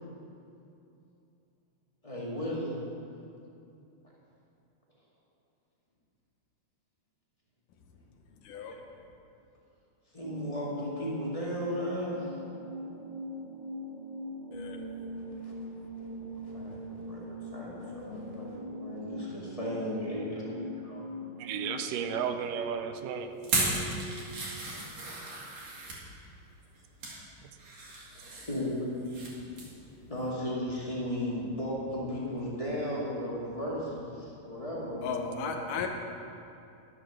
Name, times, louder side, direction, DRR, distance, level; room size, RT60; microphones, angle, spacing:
voice 1, 2.0-2.8 8.7-9.0 10.1-12.4 15.4-15.5 16.3-21.0 28.1-28.9 30.1-35.8, equal, 15° left, -6 dB, 1.6 m, -35 dB
voice 2, 8.4-8.8 14.5-14.8 35.0-35.9, left 6 dB, 75° left, 3 dB, 2.4 m, -35 dB
sound 1, 10.2-24.3, equal, 20° right, 1.3 m, -42 dB
voice 3, 21.4-23.3 27.4-27.5, right 8 dB, 85° right, 7 dB, 2.3 m, -34 dB
sound 2, 23.4-26.0 26.6-27.2 27.6-29.3 29.6-29.8 30.2-30.3, right 2 dB, 50° right, 3.2 m, -35 dB
11.5 x 7.9 x 6.6 m, 2.6 s
omnidirectional pair, 3.8 m